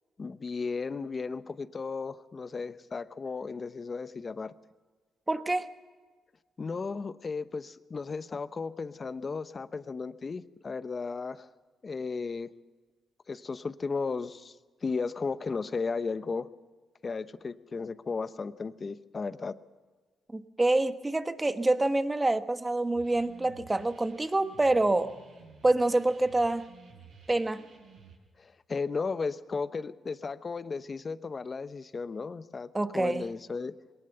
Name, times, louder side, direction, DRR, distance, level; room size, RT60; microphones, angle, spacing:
voice 1, 0.2-4.5 6.6-11.5 11.8-12.5 13.3-14.6 14.8-16.5 17.0-19.6 28.4-33.7, left 4 dB, 40° left, 14 dB, 0.9 m, -35 dB
voice 2, 5.3-5.7 20.3-25.1 25.6-26.7 27.3-27.6 32.7-33.2, right 2 dB, 20° right, 10 dB, 1.3 m, -26 dB
sound 1, 22.9-28.2, right 5 dB, 80° right, 6.3 m, -54 dB
21.5 x 18.5 x 6.9 m, 1.4 s
supercardioid pair, 65°, 0 cm